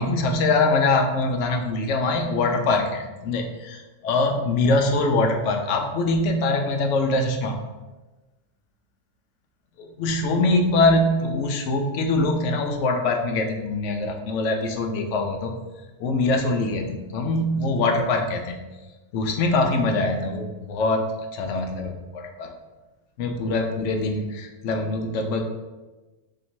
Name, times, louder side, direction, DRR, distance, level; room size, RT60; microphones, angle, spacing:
voice 1, 0.0-7.6 9.8-15.5 16.0-18.6 19.1-21.0 21.3-22.5 23.2-25.5, left 2 dB, 75° left, 4 dB, 0.9 m, -23 dB
2.8 x 2.6 x 4.3 m, 1.2 s
omnidirectional pair, 1.3 m